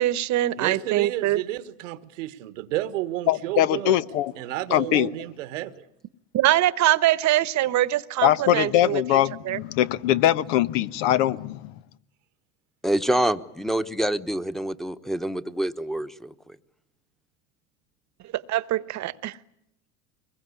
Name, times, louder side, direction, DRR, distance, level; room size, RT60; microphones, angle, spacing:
voice 1, 0.0-1.4 6.3-9.6 18.3-19.4, right 14 dB, 50° right, 1.2 m, -23 dB
voice 2, 0.6-4.0 4.4-5.8, right 15 dB, 85° right, 1.6 m, -31 dB
voice 3, 3.3-4.3 4.7-5.1 8.2-11.7, left 13 dB, 75° left, 1.1 m, -22 dB
voice 4, 12.8-16.6, right 1 dB, ahead, 1.2 m, -26 dB
24.0 x 21.5 x 9.8 m
supercardioid pair, 95°, 37 cm